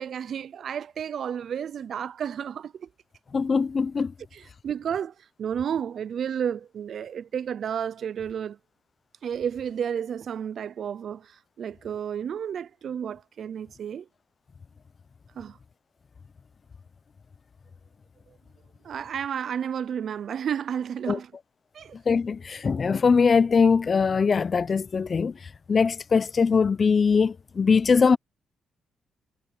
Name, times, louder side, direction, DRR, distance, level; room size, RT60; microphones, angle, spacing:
voice 1, 0.0-2.9 4.3-8.6 9.2-14.1 15.4-15.6 18.8-21.3 21.7-22.0, right 8 dB, 65° right, 0.5 m, -32 dB
voice 2, 3.3-4.1 21.1-21.2 22.1-25.3 25.7-28.2, left 5 dB, 40° left, 0.6 m, -21 dB
cardioid pair, 95°, 0 cm